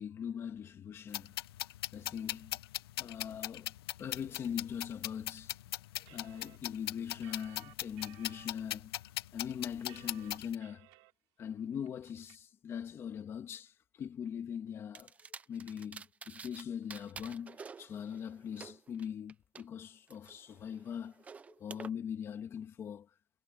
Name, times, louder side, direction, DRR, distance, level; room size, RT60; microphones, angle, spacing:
voice 1, 0.0-1.3 1.9-2.6 3.0-3.7 4.0-5.6 6.1-8.9 9.3-10.9 11.4-15.1 15.5-21.2 21.6-23.1, left 8 dB, 20° left, 2.3 m, -41 dB
sound 1, 1.1-10.5, left 15 dB, 85° left, 1.2 m, -40 dB
sound 2, 6.0-8.5 9.0-9.1 9.4-11.1 11.4-11.5 11.9-12.4, right 22 dB, 45° right, 3.6 m, -58 dB
sound 3, 14.9-16.6 16.9-19.6 20.1-21.9, right 5 dB, 10° right, 0.7 m, -50 dB
supercardioid pair, 170°, 13 cm